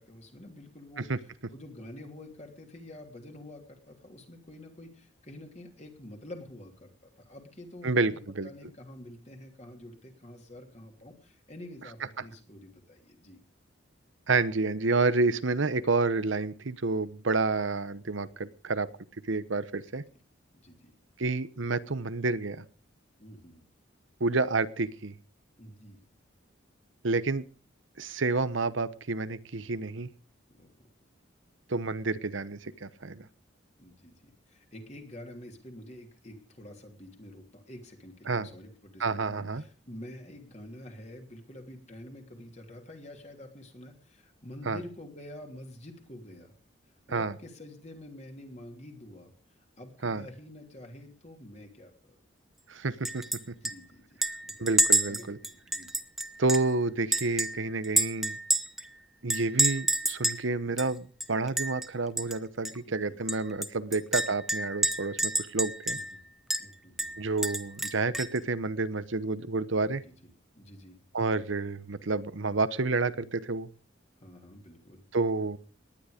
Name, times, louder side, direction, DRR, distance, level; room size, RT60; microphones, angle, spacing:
voice 1, 0.0-13.4 20.5-20.9 23.2-23.6 25.6-26.0 30.5-30.7 33.8-34.1 34.5-46.5 47.1-49.3 49.8-52.1 53.4-54.8 55.1-55.9 62.9-63.1 65.9-66.2 66.6-67.2 70.0-70.1 70.5-71.0 74.2-75.0, left 1 dB, 35° left, 3 dB, 3.1 m, -48 dB
voice 2, 7.8-8.5 14.3-18.9 19.3-20.0 21.2-22.6 24.2-25.1 27.0-27.4 28.0-30.1 31.7-33.3 38.3-38.5 39.0-39.6 44.7-44.8 47.1-47.3 50.0-50.3 52.7-53.2 54.6-55.4 56.4-58.4 59.2-66.0 67.2-70.0 71.1-73.7 75.1-75.6, right 3 dB, 75° right, 15 dB, 1.0 m, -29 dB
Chink clink, 53.0-53.4 53.6-53.7 54.2-56.7 57.1-58.9 59.3-60.4 60.8-60.9 61.2-61.9 62.2-62.4 62.6-62.7 63.3-66.2 66.5-66.6 67.0-68.4, right 1 dB, ahead, 0.9 m, -28 dB
19.0 x 11.0 x 5.1 m, 0.39 s
head